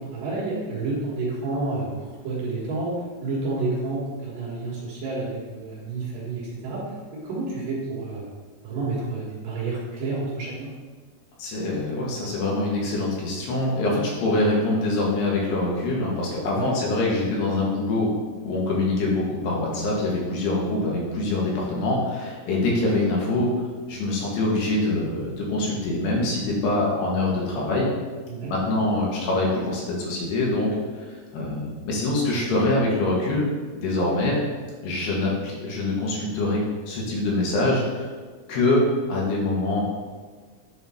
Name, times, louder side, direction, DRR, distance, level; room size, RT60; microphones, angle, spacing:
voice 1, 0.0-6.8 7.1-8.2 8.6-10.7 16.5-16.7 28.3-28.5, right 3 dB, 60° right, -5 dB, 3.0 m, -30 dB
voice 2, 11.4-18.1 18.4-23.5 23.9-27.9 28.5-30.8 31.3-34.4 34.8-38.1 38.5-39.8, left 2 dB, 85° left, -3 dB, 3.7 m, -24 dB
10.0 x 3.7 x 4.3 m, 1.5 s
omnidirectional pair, 4.6 m